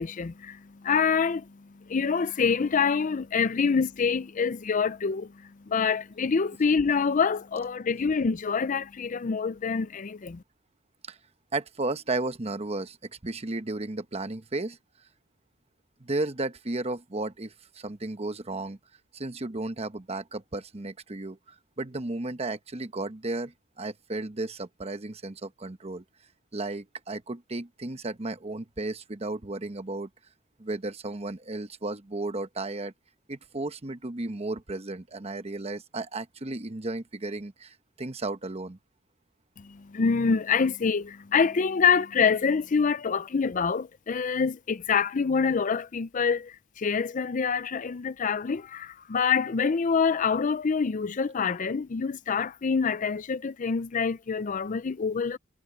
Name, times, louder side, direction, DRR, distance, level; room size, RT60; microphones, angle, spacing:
voice 1, 0.0-10.4 39.6-55.4, left 5 dB, 40° left, 0.5 m, -26 dB
voice 2, 11.5-14.8 16.0-18.8 19.1-26.0 26.5-30.1 30.6-32.9 33.3-38.8, right 2 dB, 30° right, 1.0 m, -34 dB
head